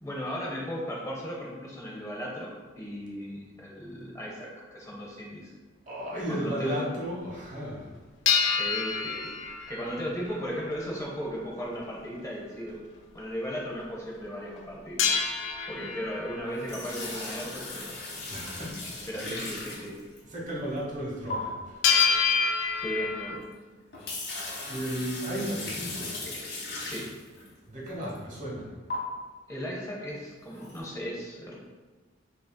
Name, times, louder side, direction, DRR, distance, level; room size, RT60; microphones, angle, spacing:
voice 1, 0.0-5.5 6.1-6.9 8.6-9.3 9.7-12.8 13.1-15.2 15.7-18.0 19.1-20.0 22.8-23.4 26.8-27.1 29.5-31.6, equal, 15° left, -3 dB, 0.6 m, -36 dB
voice 2, 5.9-7.9 18.3-19.4 20.3-21.8 24.6-26.2 27.7-29.1 30.6-30.7, equal, 40° right, -4 dB, 1.0 m, -35 dB
sound 1, 8.3-10.6 15.0-16.8 21.8-23.4, left 6 dB, 80° left, 0.5 m, -27 dB
sound 2, 16.5-20.4 21.3-21.4 23.4-23.5 23.8-27.5 28.0-28.2 28.9-29.0 30.5-30.8, left 2 dB, 60° left, 1.0 m, -38 dB
5.9 x 2.7 x 2.2 m, 1.3 s
head